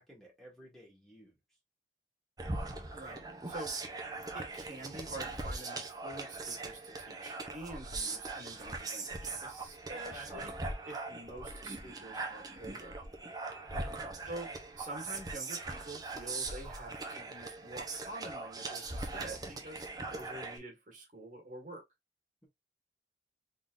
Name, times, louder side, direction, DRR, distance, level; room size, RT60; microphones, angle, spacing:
voice 1, 0.0-1.3 9.8-10.4 13.7-14.1, equal, ahead, 1.6 m, -54 dB
sound 1, 2.4-20.6, right 3 dB, 20° right, 0.8 m, -41 dB
voice 2, 2.9-3.7 4.3-10.5 10.8-13.0 14.2-21.8, right 2 dB, 45° right, 1.6 m, -47 dB
3.8 x 3.8 x 2.5 m
head